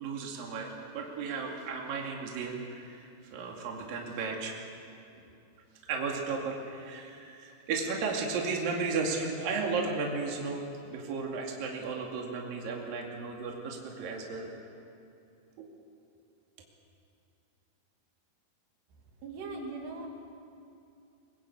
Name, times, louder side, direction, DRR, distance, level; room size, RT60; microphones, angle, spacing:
voice 1, 0.0-4.5 5.9-14.5 15.6-15.7, right 4 dB, 60° right, 0 dB, 3.9 m, -34 dB
voice 2, 19.2-20.1, right 3 dB, 75° right, 1 dB, 4.4 m, -39 dB
24.0 x 21.0 x 8.4 m, 2.6 s
omnidirectional pair, 4.9 m